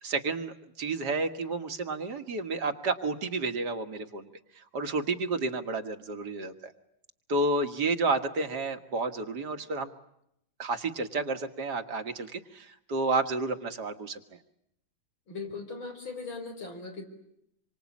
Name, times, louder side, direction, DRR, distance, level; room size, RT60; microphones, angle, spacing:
voice 1, 0.0-4.3 4.5-6.7 7.3-9.9 10.6-14.2, right 3 dB, 55° right, 7 dB, 2.1 m, -31 dB
voice 2, 15.3-17.0, left 4 dB, 90° left, 4 dB, 5.8 m, -39 dB
27.0 x 24.5 x 8.5 m, 0.77 s
omnidirectional pair, 2.1 m